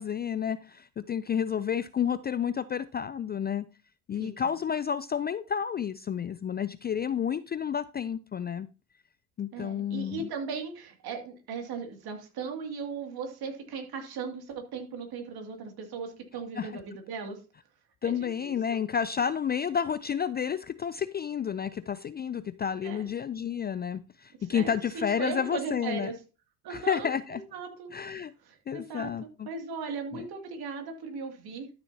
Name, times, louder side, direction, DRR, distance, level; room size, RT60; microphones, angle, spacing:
voice 1, 0.0-3.6 4.1-8.7 9.4-10.3 16.6-16.7 18.0-26.1 26.7-27.4 27.9-28.3 28.7-29.5 30.1-30.3, left 8 dB, 25° left, 14 dB, 0.4 m, -30 dB
voice 2, 4.2-4.5 9.5-17.4 18.0-18.8 22.8-23.0 24.5-26.2 26.6-27.9 28.4-29.1 29.5-31.7, right 5 dB, 55° right, 4 dB, 2.4 m, -38 dB
12.5 x 6.9 x 2.8 m, 0.31 s
hypercardioid pair, 60°, 44 cm